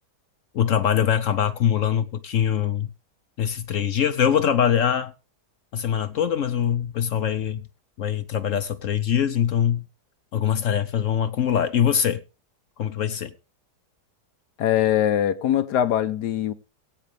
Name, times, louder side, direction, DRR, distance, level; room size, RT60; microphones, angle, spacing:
voice 1, 0.5-2.9 3.4-5.1 5.7-7.7 8.0-9.9 10.3-12.2 12.8-13.3, left 9 dB, 60° left, 1.0 m, -23 dB
voice 2, 14.6-16.5, left 11 dB, 80° left, 1.4 m, -22 dB
20.0 x 8.8 x 3.4 m
omnidirectional pair, 1.8 m